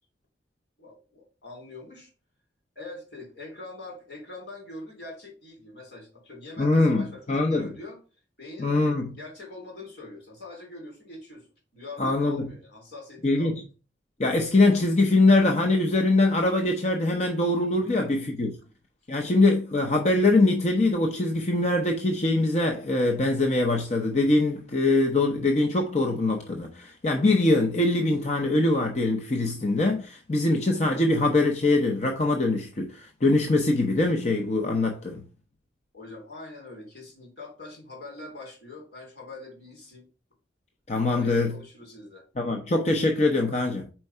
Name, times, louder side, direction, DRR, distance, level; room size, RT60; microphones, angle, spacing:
voice 1, 0.8-2.1 2.7-8.0 8.4-11.5 11.7-13.5 17.8-18.1 19.1-19.4 30.5-30.8 35.9-40.1 41.1-42.2, left 2 dB, 70° left, 2.9 m, -43 dB
voice 2, 6.6-7.0 7.3-7.7 8.6-9.1 12.0-12.5 13.2-13.6 14.2-18.6 19.1-35.2 40.9-41.5 42.4-43.9, left 2 dB, 40° left, 0.6 m, -23 dB
4.5 x 4.4 x 5.5 m
head